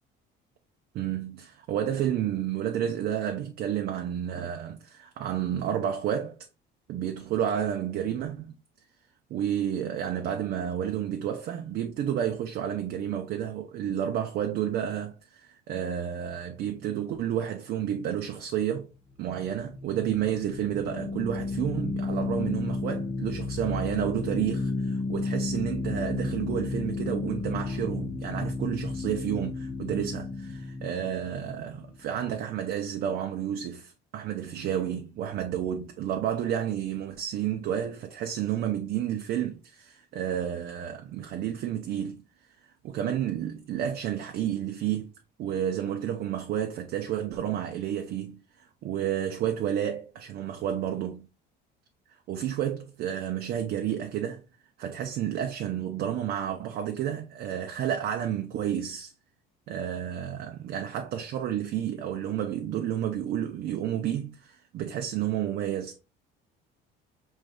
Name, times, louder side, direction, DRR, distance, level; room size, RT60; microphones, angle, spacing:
voice 1, 0.9-6.4 6.9-8.5 9.3-18.9 19.2-42.2 42.8-45.1 45.4-51.3 52.3-54.4 54.8-59.1 59.7-66.0, right 10 dB, 50° right, 0.5 m, -31 dB
sound 1, 19.2-32.4, left 3 dB, 10° left, 0.5 m, -33 dB
4.9 x 3.1 x 2.2 m
cardioid pair, 160°, 21 cm